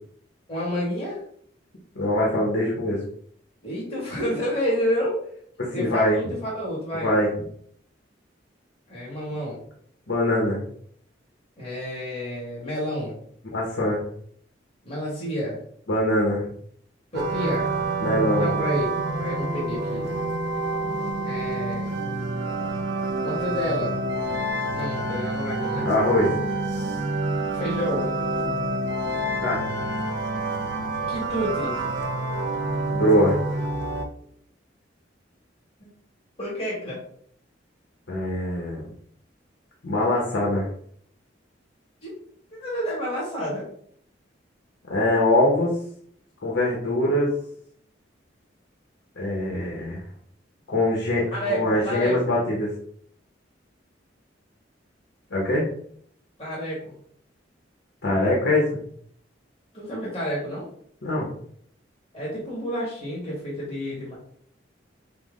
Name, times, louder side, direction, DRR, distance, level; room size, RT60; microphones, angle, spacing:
voice 1, 0.5-1.2 3.6-5.2 5.7-7.1 8.9-9.6 11.6-13.2 14.8-15.6 17.1-17.7 18.4-18.9 19.2-20.0 21.2-21.9 23.2-24.0 24.7-25.9 27.5-28.1 31.1-31.7 35.8-35.9 36.4-37.0 42.0-42.2 42.5-43.7 51.3-52.2 56.4-56.9 59.7-60.6 62.1-64.2, equal, 30° left, -6 dB, 1.7 m, -29 dB
voice 2, 1.9-3.0 5.6-6.2 7.0-7.3 10.1-10.6 13.4-14.0 15.9-16.4 18.0-18.5 25.8-26.3 29.4-29.7 32.9-33.4 38.1-38.9 39.8-40.7 44.9-45.7 46.4-47.3 49.2-50.0 50.7-52.7 55.3-55.7 58.0-58.8 61.0-61.3, left 1 dB, 75° left, -3 dB, 1.1 m, -23 dB
sound 1, 17.1-34.1, right 2 dB, 65° right, 0.6 m, -27 dB
5.8 x 2.1 x 3.7 m, 0.63 s
head